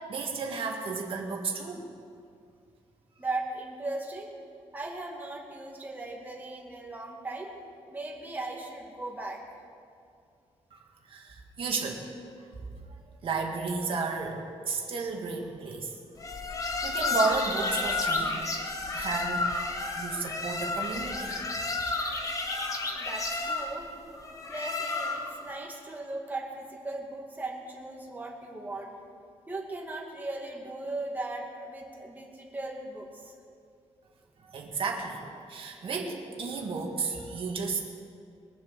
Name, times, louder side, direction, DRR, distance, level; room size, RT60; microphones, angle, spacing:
voice 1, 0.1-1.8 10.7-10.8 11.1-12.1 13.2-14.4 14.7-15.9 16.6-18.4 18.9-19.5 20.0-21.4 34.4-37.8, right 4 dB, 50° right, 1 dB, 1.9 m, -33 dB
voice 2, 3.2-4.3 4.7-7.5 7.9-9.4 23.0-23.9 24.5-28.9 29.5-33.3, right 2 dB, 15° right, -1 dB, 2.1 m, -38 dB
sound 1, 16.2-25.4, left 3 dB, 30° left, 1.2 m, -31 dB
22.0 x 7.3 x 6.5 m, 2.4 s
wide cardioid pair, 160°, 12 cm